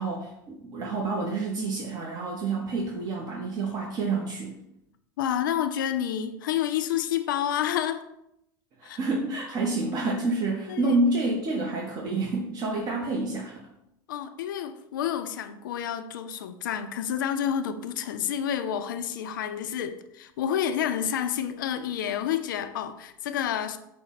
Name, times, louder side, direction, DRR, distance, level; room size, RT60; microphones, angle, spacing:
voice 1, 0.0-4.5 8.8-13.6, right 2 dB, 40° right, 0.7 m, -28 dB
voice 2, 5.2-8.1 8.8-9.0 10.7-11.0 14.1-23.8, left 9 dB, 90° left, 0.4 m, -29 dB
5.2 x 2.1 x 4.0 m
supercardioid pair, 110°, 10 cm